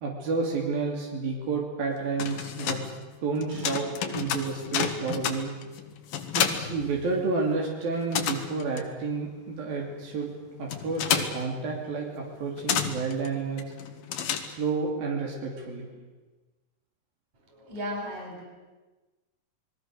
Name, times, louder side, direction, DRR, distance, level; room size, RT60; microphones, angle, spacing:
voice 1, 0.0-2.8 3.2-5.5 6.3-10.3 10.6-13.7 14.4-15.9, right 4 dB, 85° right, -1 dB, 4.7 m, -30 dB
sound 1, 2.0-7.6 7.8-14.9, left 8 dB, 85° left, 3.5 m, -32 dB
voice 2, 17.3-18.5, equal, 50° right, 2 dB, 6.3 m, -36 dB
29.0 x 21.0 x 6.6 m, 1.2 s
omnidirectional pair, 4.1 m